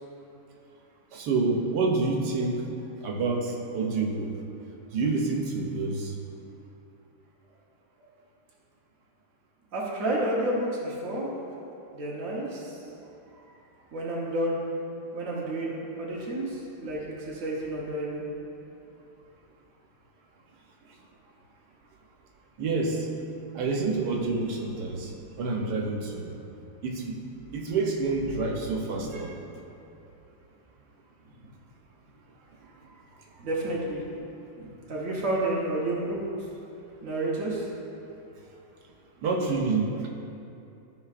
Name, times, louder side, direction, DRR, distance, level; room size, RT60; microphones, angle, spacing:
voice 1, 1.1-2.6 3.0-4.3 4.9-6.2 22.6-23.1 23.5-25.1 25.4-26.3 26.8-27.2 27.5-29.4 39.2-40.1, right 3 dB, 90° right, 0 dB, 1.5 m, -28 dB
voice 2, 9.7-11.3 11.9-12.9 13.4-13.6 13.9-14.6 15.1-18.2 31.2-31.3 32.9-33.0 33.3-34.0 34.6-36.5 37.0-37.7, right 1 dB, 55° right, -5 dB, 1.4 m, -30 dB
13.0 x 5.3 x 2.5 m, 2.8 s
omnidirectional pair, 1.7 m